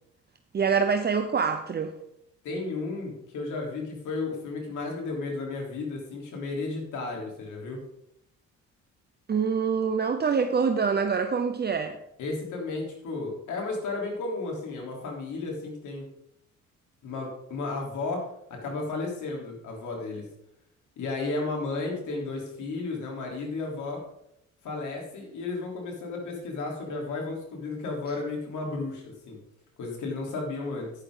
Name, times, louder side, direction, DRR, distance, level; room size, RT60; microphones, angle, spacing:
voice 1, 0.5-1.9 9.3-12.0, right 5 dB, 35° right, 7 dB, 0.8 m, -25 dB
voice 2, 2.4-7.8 12.2-16.1 17.0-20.3 21.0-24.0 24.6-29.4 29.8-30.9, left 3 dB, 80° left, 0 dB, 3.5 m, -33 dB
10.5 x 10.5 x 3.8 m, 0.78 s
cardioid pair, 90°, 30 cm